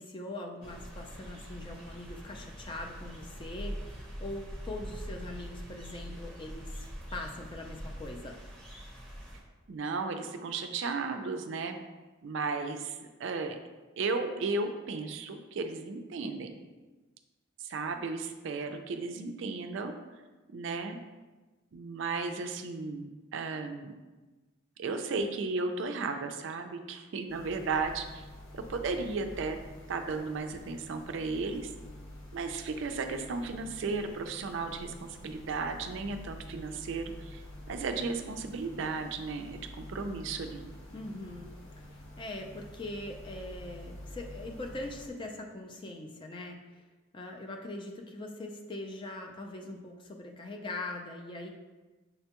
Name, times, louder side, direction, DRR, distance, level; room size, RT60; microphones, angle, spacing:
voice 1, 0.0-8.4 40.9-41.5 41.9-46.8 47.1-51.5, left 2 dB, 25° left, 2 dB, 0.3 m, -42 dB
sound 1, 0.6-9.4, equal, 5° left, 0.8 m, -43 dB
voice 2, 9.7-11.8 12.2-13.6 14.0-16.5 17.7-19.9 20.5-21.0 21.7-23.9 24.8-28.2 28.5-29.6 29.9-31.7 32.3-37.4 37.7-40.6, right 4 dB, 60° right, 6 dB, 0.3 m, -34 dB
sound 2, 27.3-45.1, left 1 dB, 80° left, 1.0 m, -48 dB
6.6 x 2.2 x 2.8 m, 1.2 s
head